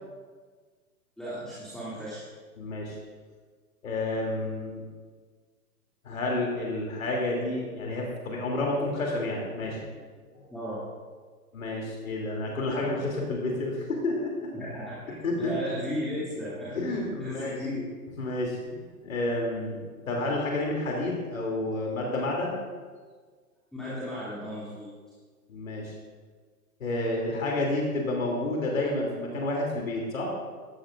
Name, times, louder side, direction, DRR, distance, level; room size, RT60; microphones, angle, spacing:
voice 1, 1.2-2.2 10.5-10.8 14.5-17.8 23.7-24.9, equal, ahead, -11 dB, 2.6 m, -35 dB
voice 2, 2.6-3.0 3.8-4.8 6.0-9.8 10.3-10.4 11.5-14.5 15.2-15.5 16.7-17.6 18.2-22.6 25.5-25.9 26.8-30.3, left 2 dB, 55° left, -2 dB, 3.1 m, -30 dB
18.0 x 14.0 x 2.5 m, 1.5 s
figure-of-eight pair, 120°, 47 cm